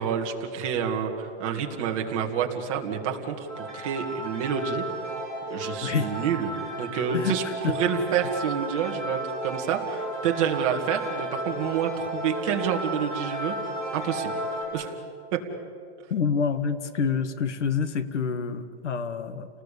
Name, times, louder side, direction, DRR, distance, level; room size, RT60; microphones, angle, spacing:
voice 1, 0.0-4.8 5.5-13.6 13.9-14.3 14.7-14.9 15.3-15.4, right 7 dB, 30° right, 2 dB, 2.2 m, -28 dB
sound 1, 3.5-14.6, right 1 dB, 15° left, 7.7 m, -34 dB
voice 2, 5.8-6.1 7.1-7.7 16.1-19.5, left 6 dB, 90° left, 12 dB, 2.0 m, -27 dB
30.0 x 19.5 x 8.6 m, 2.5 s
hypercardioid pair, 175°, 34 cm